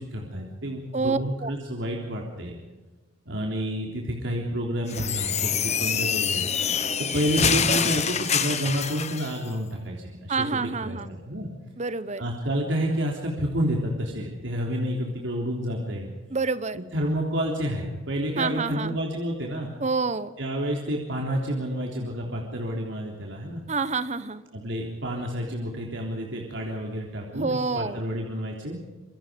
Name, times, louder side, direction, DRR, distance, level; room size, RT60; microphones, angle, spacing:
voice 1, 0.0-2.5 3.3-6.5 7.0-11.5 12.2-16.1 16.7-19.7 20.4-23.6 24.5-28.8, equal, 70° right, -1 dB, 3.5 m, -29 dB
voice 2, 0.9-1.5 10.3-11.1 11.8-12.3 16.3-16.8 18.4-19.0 19.8-20.4 23.7-24.4 27.3-28.0, right 4 dB, 35° right, 14 dB, 1.0 m, -28 dB
sound 1, 4.9-9.3, left 7 dB, 35° left, 1.4 m, -25 dB
26.5 x 23.0 x 5.2 m, 1.2 s
head